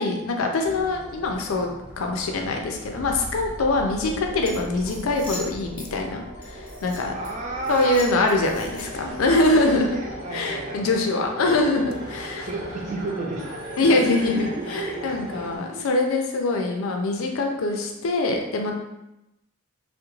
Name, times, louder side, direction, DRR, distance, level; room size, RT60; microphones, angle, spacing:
voice 1, 0.0-1.7 2.0-7.1 7.7-10.0 10.3-12.5 13.8-18.7, left 2 dB, 90° left, 3 dB, 0.4 m, -23 dB
sound 1, 0.6-15.6, equal, 60° right, 0.9 m, -38 dB
sound 2, 4.5-5.9 6.4-7.3 7.6-9.1, left 2 dB, 5° left, 0.6 m, -40 dB
voice 2, 7.1-8.0 9.2-11.0 11.9-12.1 12.4-15.1 15.4-15.9, right 3 dB, 35° right, 0 dB, 0.4 m, -33 dB
2.3 x 2.1 x 3.0 m, 0.90 s
head